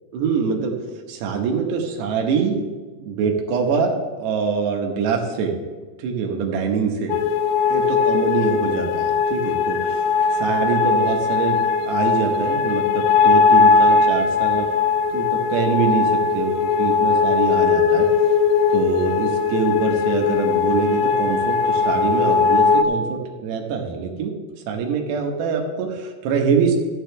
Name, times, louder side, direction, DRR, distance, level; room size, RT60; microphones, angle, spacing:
voice 1, 0.1-0.8 1.1-2.6 3.0-5.5 6.0-7.2 7.7-10.0 10.3-11.6 11.9-14.7 15.1-18.1 18.7-24.3 24.7-26.8, right 6 dB, 85° right, 2 dB, 3.5 m, -24 dB
sound 1, 7.1-22.8, left 5 dB, 85° left, 2.0 m, -19 dB
13.5 x 10.5 x 3.4 m, 1.4 s
omnidirectional pair, 4.8 m